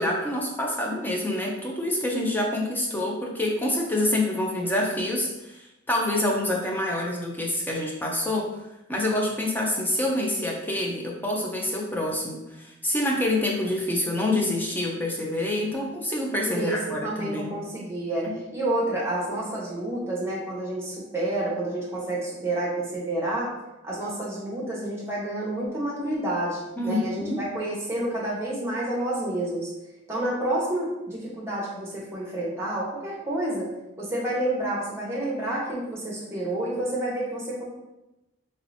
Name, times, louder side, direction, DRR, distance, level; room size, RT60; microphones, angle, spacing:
voice 1, 0.0-8.5 8.9-17.5 26.8-27.4, left 1 dB, 10° left, -2 dB, 0.5 m, -27 dB
voice 2, 16.4-23.5 23.8-29.7 30.1-33.7 34.0-37.6, right 1 dB, 10° right, -5 dB, 1.0 m, -29 dB
3.1 x 2.8 x 4.1 m, 0.95 s
head